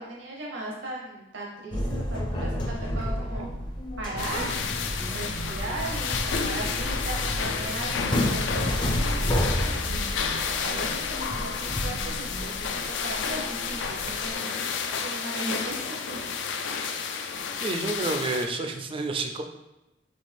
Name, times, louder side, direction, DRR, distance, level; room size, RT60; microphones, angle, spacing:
voice 1, 0.0-3.5 4.0-4.4 5.1-14.7 15.0-16.3, right 2 dB, 70° right, -3 dB, 0.8 m, -37 dB
sound 1, 1.7-14.3, equal, 25° left, 0.5 m, -31 dB
sound 2, 2.8-12.6, right 1 dB, 55° left, 1.0 m, -44 dB
sound 3, 4.2-18.5, left 6 dB, 75° left, 0.4 m, -31 dB
voice 2, 17.6-19.4, right 3 dB, 30° right, 5 dB, 0.4 m, -29 dB
4.2 x 3.3 x 3.4 m, 0.96 s
head